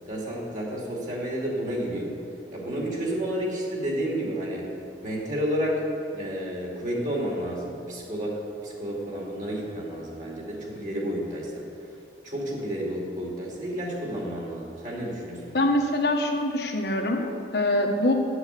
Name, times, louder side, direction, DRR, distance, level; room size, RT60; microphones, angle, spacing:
voice 1, 0.1-2.2 2.5-4.7 5.0-11.6 12.2-15.6, equal, 45° right, -3 dB, 2.5 m, -31 dB
voice 2, 15.5-17.2 17.5-18.1, left 1 dB, 70° left, 2 dB, 1.3 m, -24 dB
8.0 x 8.0 x 8.1 m, 2.6 s
head